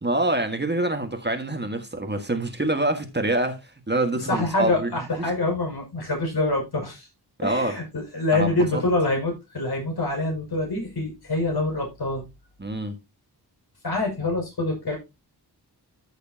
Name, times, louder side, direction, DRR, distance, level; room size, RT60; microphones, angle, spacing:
voice 1, 0.0-4.9 5.2-5.3 7.4-7.7 8.3-8.8 12.6-12.9, right 1 dB, 25° right, 1.6 m, -26 dB
voice 2, 4.2-7.1 7.4-12.2 13.8-15.0, left 2 dB, 65° left, 6.1 m, -26 dB
14.0 x 6.6 x 2.8 m
wide cardioid pair, 85°, 40 cm